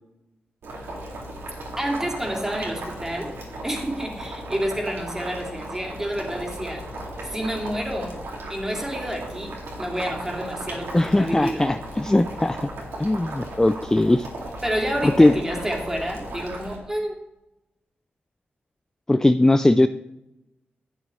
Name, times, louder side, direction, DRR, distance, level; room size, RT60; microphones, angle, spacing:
Boiling, 0.6-16.8, right 1 dB, 85° right, 2.3 m, -36 dB
voice 1, 1.8-3.4 3.6-6.8 7.2-8.1 8.5-11.6 14.6-17.2, equal, 10° right, -1 dB, 2.7 m, -29 dB
voice 2, 10.9-12.7 13.0-14.3 15.0-15.4 19.1-19.9, left 1 dB, 15° left, 11 dB, 0.4 m, -19 dB
12.0 x 7.2 x 3.2 m, 0.91 s
cardioid pair, 55°, 4 cm